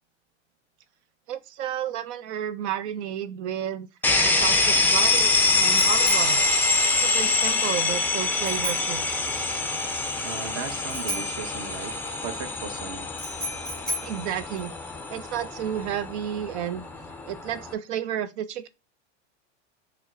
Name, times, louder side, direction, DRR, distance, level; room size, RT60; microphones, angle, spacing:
voice 1, 1.3-3.9 4.2-6.4 6.9-9.0 14.0-14.8 15.1-16.9 17.3-18.7, right 10 dB, 70° right, 0.5 m, -32 dB
sound 1, 4.0-17.7, left 3 dB, 5° left, 0.4 m, -25 dB
Bicycle bell, 4.1-15.2, equal, 25° right, 1.7 m, -37 dB
voice 2, 10.2-13.1, right 7 dB, 40° right, 0.9 m, -37 dB
6.0 x 2.1 x 2.6 m
hypercardioid pair, 100°, 36 cm